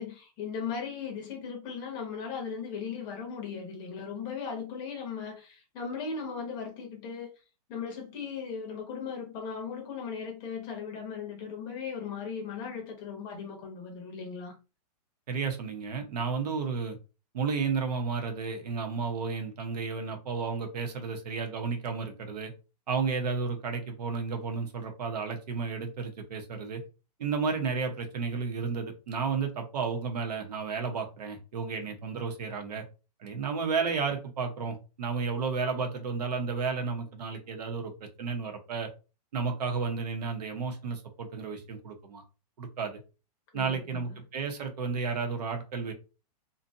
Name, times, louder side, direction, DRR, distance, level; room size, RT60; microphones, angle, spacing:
voice 1, 0.0-7.3 7.7-14.5 43.5-44.2, left 6 dB, 20° left, 0.6 m, -37 dB
voice 2, 15.3-17.0 17.3-22.5 22.9-26.8 27.2-32.8 33.2-37.9 38.2-38.9 39.3-42.2 42.6-43.0 43.5-45.9, right 5 dB, 75° right, 1.0 m, -32 dB
2.6 x 2.4 x 2.6 m
hypercardioid pair, 170°, 21 cm